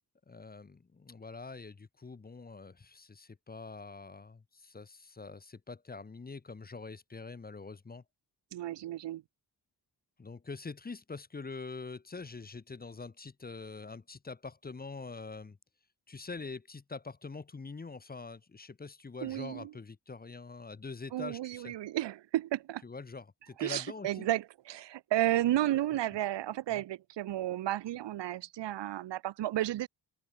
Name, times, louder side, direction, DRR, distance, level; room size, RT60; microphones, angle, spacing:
voice 1, 0.3-8.0 10.2-15.6 16.1-21.8 22.8-24.3 26.7-26.8, left 4 dB, 20° left, 0.8 m, -44 dB
voice 2, 8.5-9.2 19.2-19.7 21.1-22.8 23.6-29.9, right 13 dB, 75° right, 0.6 m, -32 dB
open air
wide cardioid pair, 165°, 43 cm